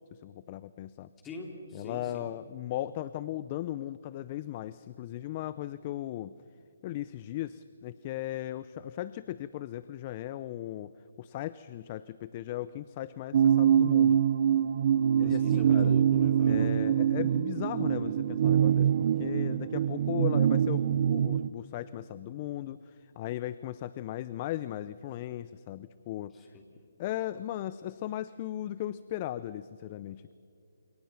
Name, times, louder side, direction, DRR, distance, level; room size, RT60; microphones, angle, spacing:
voice 1, 0.1-1.1 1.7-6.3 6.8-10.9 11.2-14.2 15.2-15.9 16.4-26.3 27.0-30.3, left 13 dB, 30° left, 16 dB, 0.5 m, -37 dB
voice 2, 1.2-2.3 15.1-16.6, left 2 dB, 10° left, 1 dB, 3.2 m, -43 dB
sound 1, 13.3-21.5, right 9 dB, 40° right, 0.5 m, -24 dB
29.5 x 27.5 x 5.8 m, 2.5 s
hypercardioid pair, 155°, 0 cm